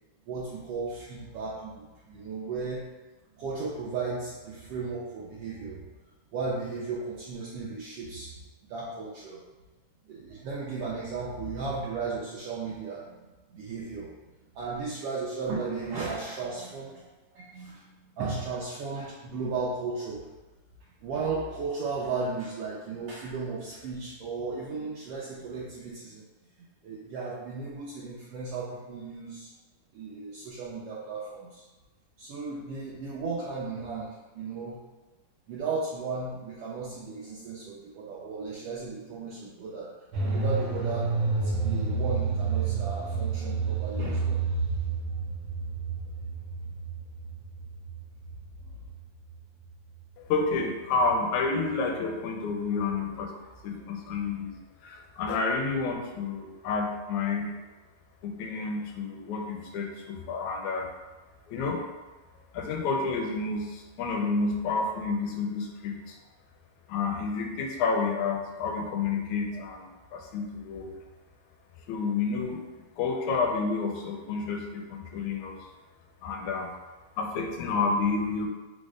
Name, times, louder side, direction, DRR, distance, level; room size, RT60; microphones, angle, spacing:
voice 1, 0.3-2.9 3.4-5.9 6.3-8.3 8.7-9.4 10.1-13.2 13.5-14.1 14.5-20.3 21.0-26.2 26.8-29.5 29.9-31.6 32.2-34.8 35.5-41.1 41.4-44.4 48.6-48.8, right 4 dB, 80° right, -5 dB, 1.3 m, -35 dB
sound 1, 40.1-50.0 50.3-50.4, right 4 dB, 60° right, 1.7 m, -30 dB
voice 2, 50.2-53.3 53.6-54.5 54.8-57.5 58.2-60.9 61.5-61.8 62.5-66.2 66.9-70.9 71.9-72.6 73.0-75.6 76.2-76.7 77.2-78.5, left 4 dB, 80° left, 2 dB, 1.9 m, -30 dB
5.0 x 2.1 x 4.8 m, 1.2 s
omnidirectional pair, 3.4 m